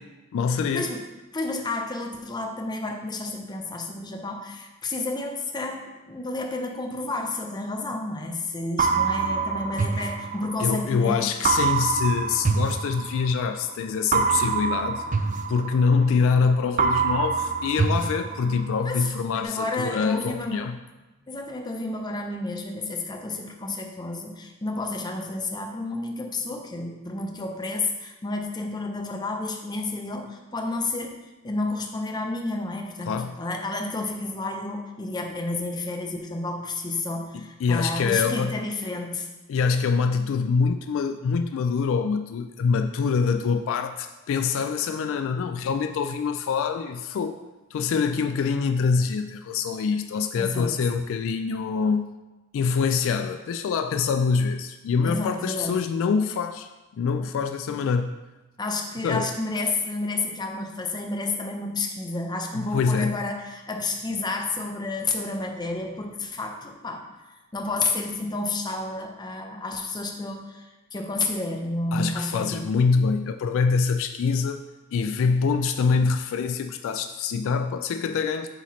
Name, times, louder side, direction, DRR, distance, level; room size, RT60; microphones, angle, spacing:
voice 1, 0.3-0.8 10.6-15.0 15.5-20.8 33.1-33.4 37.6-38.6 39.5-47.4 47.7-52.1 52.5-58.2 59.0-59.3 62.5-63.2 71.9-74.6 74.9-78.5, left 5 dB, 65° left, 8 dB, 0.3 m, -25 dB
voice 2, 1.3-11.3 18.8-20.7 21.3-31.2 31.4-39.3 50.4-50.8 55.0-55.9 58.6-67.0 67.5-72.7, left 2 dB, 20° left, 2 dB, 0.6 m, -30 dB
sound 1, 8.8-10.9 11.4-13.5 14.1-16.4 16.8-18.9, right 5 dB, 35° right, 0.3 m, -25 dB
7.7 x 4.3 x 3.1 m, 1.1 s
head